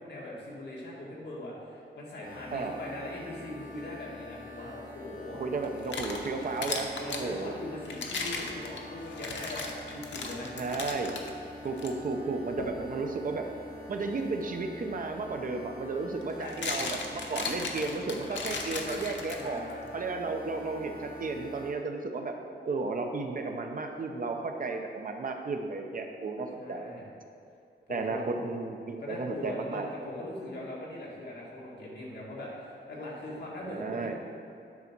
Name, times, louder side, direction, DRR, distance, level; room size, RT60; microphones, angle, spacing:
voice 1, 0.0-5.4 7.0-10.6 16.3-16.6 19.4-19.8 26.6-27.0 27.9-28.2 29.0-34.1, left 1 dB, 65° left, -5 dB, 2.0 m, -41 dB
sound 1, 2.2-21.7, left 1 dB, 50° left, 1.3 m, -47 dB
voice 2, 5.4-7.5 10.5-11.1 11.6-13.5 13.9-19.6 19.9-22.4 22.6-27.0 27.9-29.9 33.6-34.1, right 3 dB, 50° right, 4 dB, 0.7 m, -33 dB
sound 2, 5.6-7.3 7.9-11.3 11.8-11.9 12.6-12.8 14.9-15.0 16.2-19.7, left 4 dB, 90° left, 0.8 m, -36 dB
sound 3, 6.2-14.7, right 5 dB, 5° right, 1.4 m, -60 dB
9.5 x 4.1 x 6.0 m, 2.6 s
wide cardioid pair, 180°, 19 cm